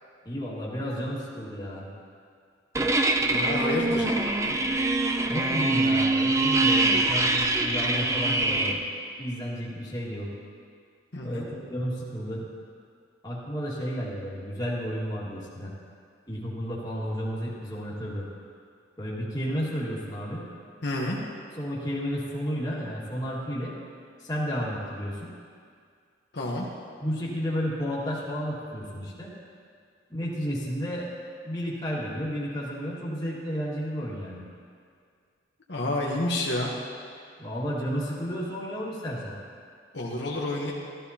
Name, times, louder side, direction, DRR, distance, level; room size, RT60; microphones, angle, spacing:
voice 1, 0.3-1.9 5.3-8.8 9.2-10.3 11.2-12.5 13.2-15.7 16.3-18.3 19.0-20.4 21.5-23.7 24.2-25.3 27.0-29.3 30.1-31.1 31.4-34.5 37.4-39.4, equal, 20° left, -5 dB, 1.8 m, -32 dB
sound 1, 2.7-8.7, right 2 dB, 15° right, 0.5 m, -24 dB
voice 2, 3.3-4.1 11.1-11.5 20.8-21.2 26.3-26.7 35.7-36.7 39.9-40.7, left 1 dB, 60° left, -3 dB, 1.1 m, -29 dB
13.5 x 13.5 x 2.9 m, 2.2 s
head